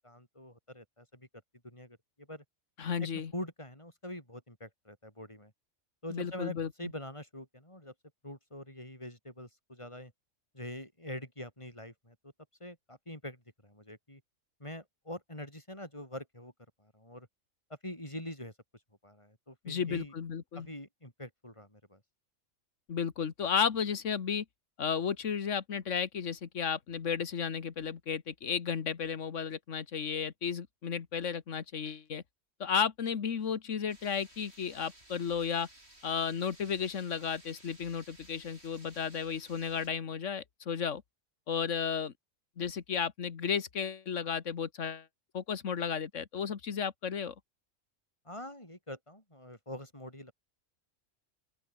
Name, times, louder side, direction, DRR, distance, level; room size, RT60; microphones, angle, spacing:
voice 1, 0.0-1.3 1.6-2.4 3.3-5.5 6.0-7.9 8.2-10.1 10.5-12.3 12.6-14.2 14.6-16.5 16.8-17.3 17.8-18.5 19.0-20.1 20.6-22.0 48.2-50.3, left 1 dB, 20° left, 8.0 m, -44 dB
voice 2, 2.8-3.3 6.1-6.9 19.7-20.7 22.9-24.5 24.8-32.2 32.6-35.7 36.0-41.0 41.5-42.1 42.6-45.1 45.3-47.4, left 7 dB, 65° left, 1.7 m, -33 dB
sound 1, 33.9-39.9, right 1 dB, 50° right, 8.2 m, -57 dB
open air
omnidirectional pair, 1.4 m